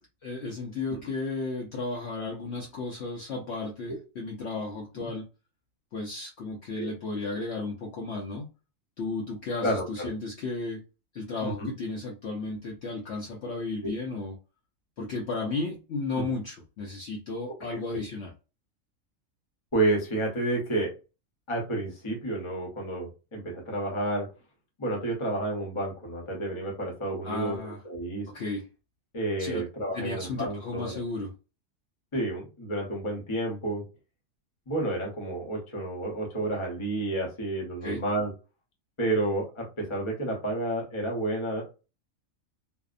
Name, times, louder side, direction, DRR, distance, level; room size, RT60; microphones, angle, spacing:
voice 1, 0.2-5.3 5.9-8.5 9.0-10.8 11.1-14.4 15.0-18.3 27.2-27.8 28.3-28.7 29.4-29.7 29.9-31.3 37.8-38.0, left 3 dB, 65° left, 0.8 m, -34 dB
voice 2, 9.6-10.1 11.4-11.7 13.8-13.9 16.2-16.3 19.7-20.9 21.5-24.3 24.8-28.2 29.1-31.0 32.1-33.8 34.7-38.3 39.0-41.7, right 2 dB, 25° left, 0.7 m, -30 dB
2.7 x 2.0 x 2.4 m
omnidirectional pair, 1.4 m